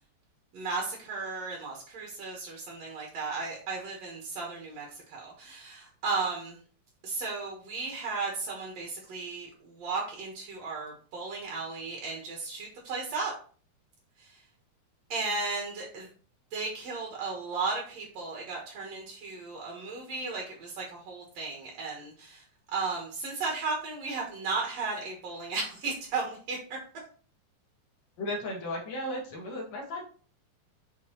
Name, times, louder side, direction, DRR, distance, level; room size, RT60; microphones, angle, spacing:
voice 1, 0.5-6.6 7.0-13.3 14.2-14.3 15.1-16.1 16.5-22.4 22.7-26.8, right 4 dB, 65° right, -1 dB, 1.7 m, -35 dB
voice 2, 28.2-30.0, left 1 dB, 55° left, -1 dB, 2.3 m, -35 dB
7.1 x 4.4 x 3.0 m, 0.41 s
omnidirectional pair, 4.9 m